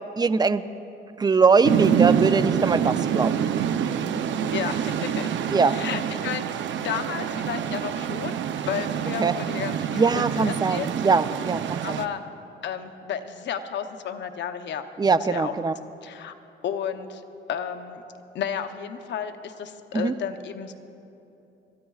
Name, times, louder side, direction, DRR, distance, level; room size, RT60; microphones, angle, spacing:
voice 1, 0.2-0.6 1.2-3.5 5.5-5.7 9.2-9.3 9.9-12.0 15.0-15.7 19.9-20.1, right 4 dB, 20° right, 13 dB, 0.5 m, -22 dB
sound 1, 1.6-12.1, right 8 dB, 70° right, 0.6 m, -26 dB
voice 2, 4.5-5.3 5.6-8.4 8.6-10.9 11.8-12.2 12.6-15.5 15.8-16.3 16.6-17.2 17.5-18.0 18.3-20.7, left 8 dB, 65° left, 7 dB, 0.8 m, -32 dB
27.5 x 13.0 x 2.4 m, 2.9 s
cardioid pair, 90°, 20 cm